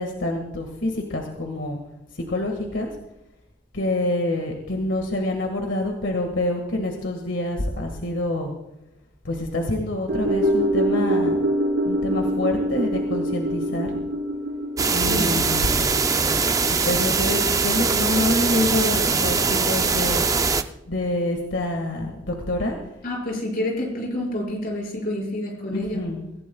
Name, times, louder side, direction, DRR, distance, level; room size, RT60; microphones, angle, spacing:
voice 1, 0.0-1.8 2.1-2.9 3.7-8.5 9.2-11.4 11.8-13.9 14.9-15.9 16.7-20.3 20.9-22.8 25.7-26.4, left 1 dB, 90° left, 2 dB, 1.8 m, -26 dB
sound 1, 10.1-18.5 18.8-18.9, equal, 70° right, 3.1 m, -25 dB
sound 2, 14.8-20.6, right 4 dB, 20° right, 0.5 m, -22 dB
voice 2, 15.0-15.4 23.0-26.0, left 1 dB, 50° left, -2 dB, 5.5 m, -28 dB
25.5 x 15.5 x 2.3 m, 0.88 s
head